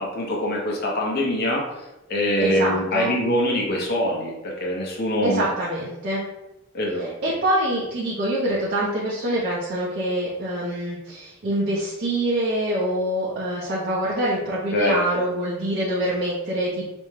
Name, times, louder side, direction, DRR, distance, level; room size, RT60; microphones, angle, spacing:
voice 1, 0.0-1.6 2.1-5.5 6.7-7.1 14.7-15.3, equal, 50° left, -1 dB, 0.6 m, -24 dB
voice 2, 2.4-3.1 5.2-6.2 7.0-16.9, right 1 dB, 50° right, -8 dB, 0.6 m, -25 dB
2.5 x 2.2 x 3.1 m, 0.95 s
head